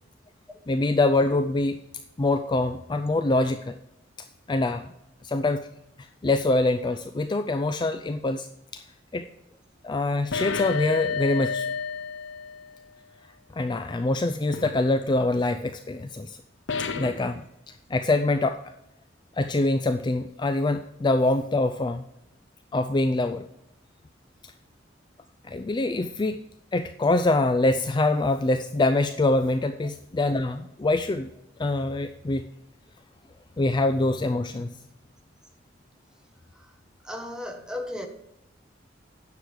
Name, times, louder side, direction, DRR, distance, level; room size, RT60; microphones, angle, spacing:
voice 1, 0.7-1.8 2.2-3.7 4.5-4.9 5.2-5.7 6.0-8.5 8.7-8.8 9.1-9.2 9.8-11.7 13.5-16.4 17.0-17.4 17.9-18.6 19.4-22.0 22.7-23.4 25.5-26.4 26.7-31.3 31.6-32.4 33.6-34.7, left 2 dB, 25° left, 0.4 m, -24 dB
sound 1, 10.3-12.9 14.5-14.8 16.7-17.3, left 5 dB, 75° left, 0.8 m, -30 dB
voice 2, 37.0-38.1, left 1 dB, 5° right, 1.1 m, -35 dB
10.0 x 6.6 x 4.7 m
head